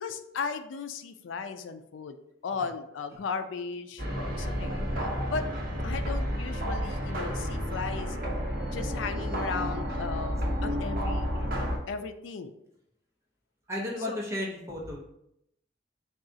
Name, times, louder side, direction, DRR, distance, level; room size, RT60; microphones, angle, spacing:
voice 1, 0.0-2.2 2.4-5.5 5.8-8.2 8.7-12.5 14.1-14.2, left 5 dB, 85° left, 9 dB, 0.4 m, -36 dB
sound 1, 4.0-11.8, equal, 55° right, 0.9 m, -31 dB
voice 2, 13.7-15.0, left 1 dB, 15° right, -4 dB, 0.8 m, -33 dB
3.7 x 2.4 x 3.8 m, 0.78 s
head